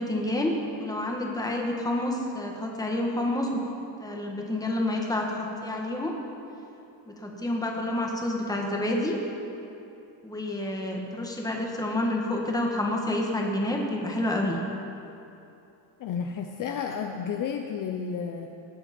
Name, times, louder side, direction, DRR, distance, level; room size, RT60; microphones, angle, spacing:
voice 1, 0.0-3.6 4.0-6.2 7.1-9.2 10.2-14.6, left 1 dB, 10° left, 0 dB, 1.3 m, -29 dB
voice 2, 16.0-18.5, left 6 dB, 45° left, 4 dB, 0.7 m, -31 dB
19.5 x 8.0 x 5.2 m, 2.8 s
cardioid pair, 165°, 47 cm